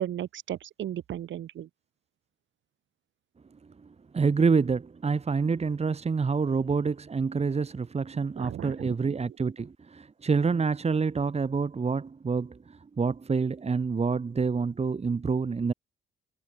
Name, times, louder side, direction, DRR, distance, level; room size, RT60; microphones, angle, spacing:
voice 1, 0.0-1.7 8.4-9.1, right 11 dB, 70° right, 5.2 m, -35 dB
voice 2, 4.1-15.7, right 5 dB, 30° right, 2.7 m, -27 dB
cardioid pair, 90°, 20 cm